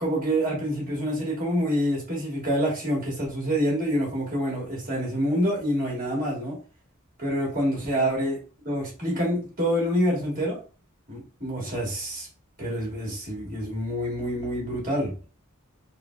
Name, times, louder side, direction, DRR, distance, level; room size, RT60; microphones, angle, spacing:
voice 1, 0.0-6.6 7.2-8.4 8.6-10.6 11.1-12.3 12.6-15.1, equal, 40° right, -3 dB, 1.5 m, -27 dB
3.7 x 2.1 x 2.3 m, 0.35 s
head